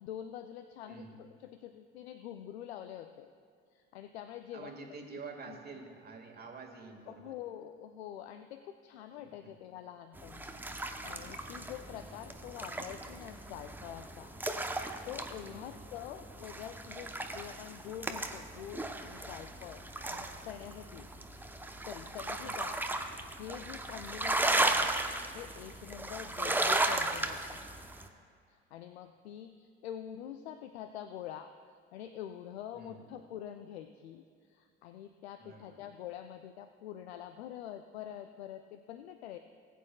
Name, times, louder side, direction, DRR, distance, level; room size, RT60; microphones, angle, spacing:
voice 1, 0.0-3.3 3.7-5.0 5.5-5.6 7.1-14.3 14.6-21.1 21.5-22.8 23.0-24.9 25.3-27.7 28.5-31.5 31.9-39.4, left 10 dB, 70° left, 9 dB, 0.5 m, -46 dB
voice 2, 0.9-1.2 4.5-7.3 9.2-9.6 15.4-15.8 22.4-22.7 32.7-33.0 35.4-35.9, right 4 dB, 30° right, 3 dB, 1.9 m, -48 dB
sound 1, 10.2-28.1, right 2 dB, 5° right, 0.8 m, -36 dB
20.0 x 9.2 x 2.3 m, 2.2 s
figure-of-eight pair, 60°, 33 cm